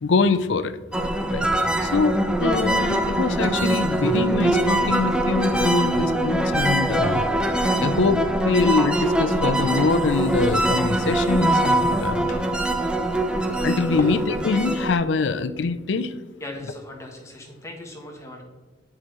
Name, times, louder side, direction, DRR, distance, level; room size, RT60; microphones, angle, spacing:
voice 1, 0.0-0.8 1.3-1.5 1.8-7.2 7.8-12.3 13.5-16.1, left 4 dB, 85° left, 12 dB, 0.5 m, -24 dB
sound 1, 0.9-15.0, right 1 dB, 5° right, 0.5 m, -23 dB
sound 2, 9.9-14.9, left 1 dB, 45° left, 0.9 m, -42 dB
voice 2, 16.4-18.4, left 1 dB, 15° left, 1 dB, 1.1 m, -38 dB
9.8 x 4.9 x 3.1 m, 1.3 s
head